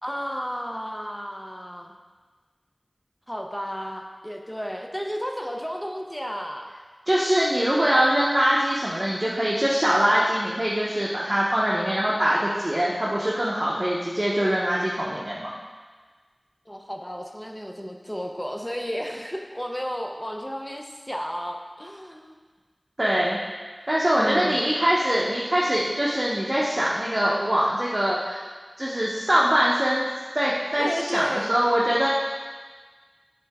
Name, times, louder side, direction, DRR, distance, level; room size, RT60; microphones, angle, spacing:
voice 1, 0.0-2.0 3.3-6.7 16.7-22.4 24.2-24.7 30.8-31.5, equal, 10° left, 2 dB, 0.5 m, -33 dB
voice 2, 7.1-15.5 23.0-23.4 23.9-28.4 28.8-30.1 30.3-32.1, equal, 40° right, -6 dB, 0.8 m, -23 dB
7.8 x 3.6 x 3.5 m, 1.4 s
wide cardioid pair, 45°, 0 cm